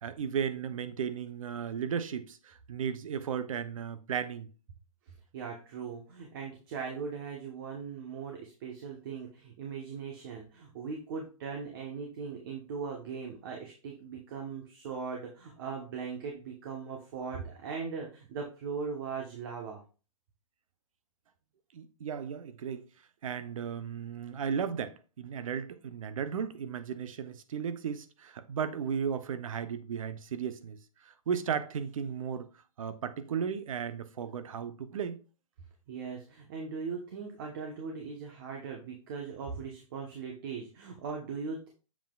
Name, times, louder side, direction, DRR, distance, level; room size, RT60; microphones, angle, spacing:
voice 1, 0.0-4.5 21.7-22.8 23.2-30.8 31.0-32.5 32.8-35.2, right 7 dB, 65° right, 0.8 m, -35 dB
voice 2, 5.3-19.8 35.9-41.7, right 5 dB, 40° right, 1.1 m, -39 dB
7.3 x 5.6 x 2.4 m
hypercardioid pair, 165°, 18 cm